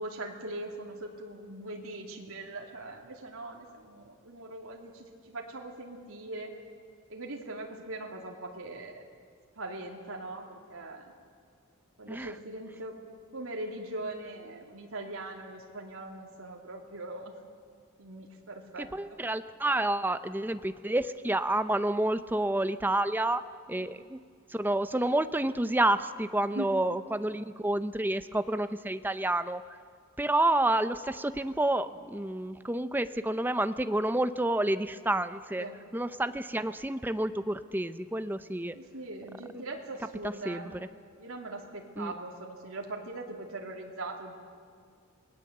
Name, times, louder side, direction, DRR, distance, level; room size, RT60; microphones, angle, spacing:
voice 1, 0.0-6.5 7.1-9.1 9.5-11.1 12.0-12.9 13.3-17.3 18.0-19.2 26.4-26.7 35.6-35.8 38.7-40.8 41.2-44.3, right 2 dB, 80° right, 0 dB, 2.7 m, -41 dB
voice 2, 18.8-23.4 23.7-24.2 24.5-29.6 30.2-35.7 35.9-38.7 39.5-39.6 40.5-40.9 42.0-42.1, right 1 dB, 10° right, 11 dB, 0.6 m, -29 dB
28.5 x 19.0 x 7.9 m, 2.1 s
head